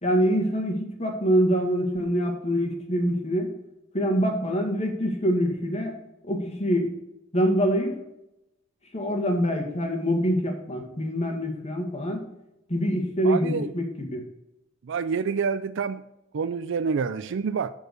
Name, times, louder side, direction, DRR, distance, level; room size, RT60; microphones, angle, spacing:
voice 1, 0.0-3.5 3.9-6.0 6.2-6.9 7.3-8.0 8.9-12.2 12.7-14.2, equal, 30° left, 3 dB, 1.8 m, -25 dB
voice 2, 13.2-13.7 14.8-16.0 16.3-17.7, right 5 dB, 60° right, 11 dB, 0.4 m, -27 dB
11.0 x 4.6 x 6.7 m, 0.88 s
head